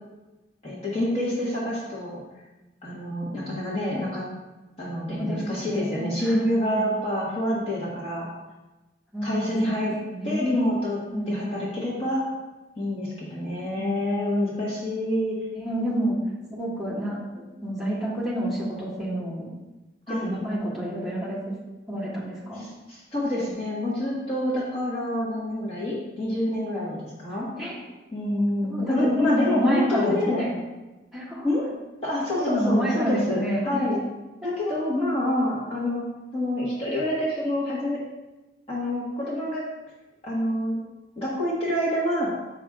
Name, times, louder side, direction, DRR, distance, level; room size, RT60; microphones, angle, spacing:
voice 1, 0.6-2.2 2.8-4.2 4.8-8.3 9.2-10.0 10.2-11.0 11.3-12.3 12.8-15.4 17.0-17.1 20.1-20.4 22.6-27.5 28.1-30.5 31.4-31.6 32.0-33.4 33.6-34.0 34.4-36.1 36.3-38.0 38.7-39.6 40.2-40.8 41.2-42.3, left 1 dB, 30° left, -7 dB, 1.3 m, -27 dB
voice 2, 5.1-6.8 9.1-10.6 11.1-11.7 13.8-13.9 15.5-16.2 16.5-17.2 17.6-19.5 20.1-21.4 21.9-22.6 27.6-27.8 28.6-30.5 31.1-31.5 32.4-33.9 34.4-35.1, equal, ahead, -8 dB, 1.7 m, -29 dB
7.5 x 6.0 x 2.4 m, 1.1 s
head